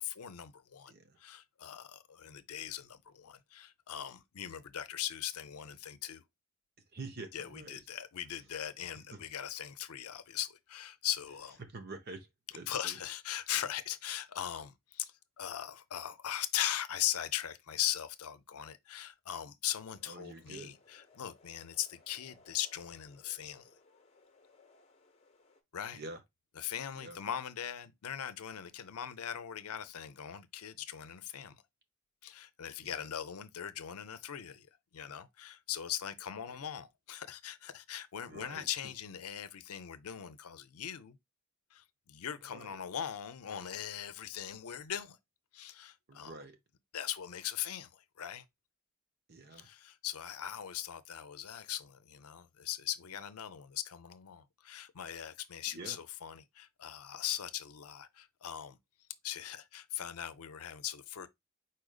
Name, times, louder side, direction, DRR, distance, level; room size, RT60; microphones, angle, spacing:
voice 1, 0.0-0.9 1.2-6.2 7.3-11.6 12.7-23.7 25.7-26.0 26.6-31.6 32.2-34.7 34.9-41.2 41.7-45.2 45.5-46.3 46.9-48.4 49.6-58.8 59.2-61.3, left 10 dB, 85° left, 0.6 m, -40 dB
voice 2, 0.9-1.2 6.9-7.8 9.1-9.2 11.6-12.3 12.5-13.0 20.1-20.8 25.9-26.2 26.9-27.2 32.8-33.1 38.3-38.9 42.4-42.8 46.1-46.6 49.3-49.7 55.7-56.0, right 2 dB, 45° right, 0.9 m, -47 dB
sound 1, 19.8-25.6, left 3 dB, 30° left, 0.8 m, -64 dB
5.0 x 4.3 x 2.3 m
head